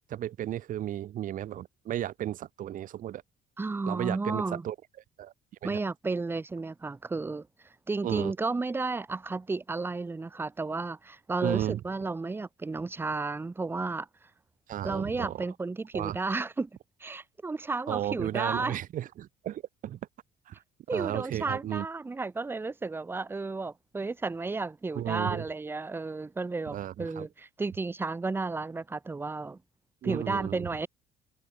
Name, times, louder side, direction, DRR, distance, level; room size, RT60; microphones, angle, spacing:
voice 1, 0.1-3.2 3.9-4.8 5.2-5.3 5.6-5.8 8.0-8.3 11.4-11.8 14.7-15.4 15.9-16.2 17.9-20.0 20.5-20.6 20.9-21.9 25.0-25.4 26.7-27.3 30.0-30.7, right 12 dB, 50° right, 0.6 m, -34 dB
voice 2, 3.6-4.7 5.6-7.5 7.9-14.1 14.8-16.7 17.0-18.8 20.9-29.6 30.0-30.9, right 3 dB, 15° right, 0.5 m, -33 dB
cardioid pair, 110°, 17 cm